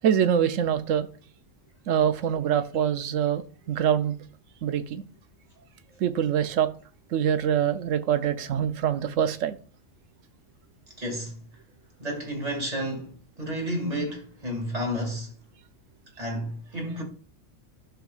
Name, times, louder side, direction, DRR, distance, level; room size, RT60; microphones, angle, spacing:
voice 1, 0.0-1.1 1.9-4.1 4.6-5.0 6.0-6.7 7.1-9.6, right 9 dB, 75° right, 1.0 m, -24 dB
voice 2, 11.0-11.4 12.0-15.3 16.2-17.0, equal, 30° right, 2.2 m, -31 dB
12.5 x 5.9 x 2.4 m
omnidirectional pair, 1.4 m